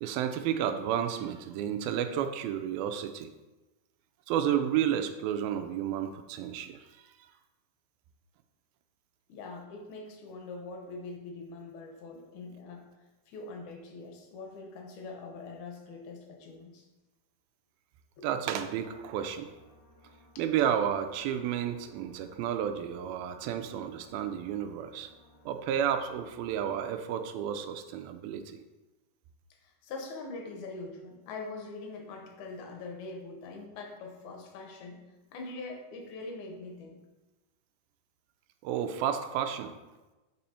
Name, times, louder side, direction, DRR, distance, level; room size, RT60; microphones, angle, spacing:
voice 1, 0.0-3.3 4.3-6.9 18.2-19.5 20.4-25.1 25.5-28.6 38.6-39.7, right 9 dB, 85° right, 8 dB, 2.3 m, -31 dB
voice 2, 9.3-12.9 13.3-16.9 18.2-18.3 20.4-20.5 29.6-35.0 35.3-37.0, left 3 dB, 65° left, 2 dB, 2.1 m, -43 dB
sound 1, 18.7-26.8, left 2 dB, 30° left, 1.6 m, -60 dB
6.7 x 5.4 x 4.3 m, 1.1 s
omnidirectional pair, 4.3 m